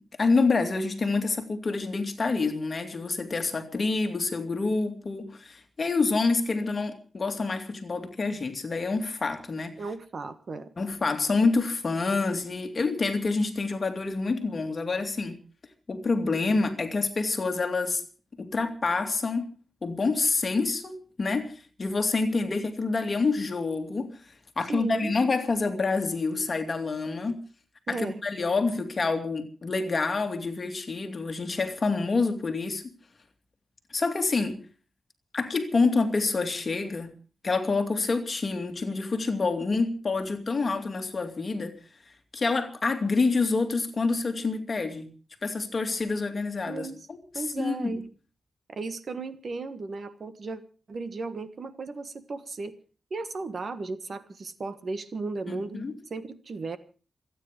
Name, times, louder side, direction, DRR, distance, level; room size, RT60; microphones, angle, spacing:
voice 1, 0.2-9.7 10.8-15.4 15.9-18.0 18.4-19.5 19.8-24.2 24.6-27.4 27.9-32.8 33.9-34.6 35.3-37.1 37.4-41.7 42.3-45.1 45.4-48.0 55.5-55.9, left 3 dB, 35° left, 2.4 m, -27 dB
voice 2, 9.8-10.7 24.7-25.1 27.9-28.2 46.7-47.0 47.3-48.0 48.7-50.6 50.9-52.7 53.1-55.8 56.1-56.8, right 3 dB, 45° right, 1.4 m, -35 dB
28.0 x 9.7 x 5.0 m
wide cardioid pair, 170°, 0 cm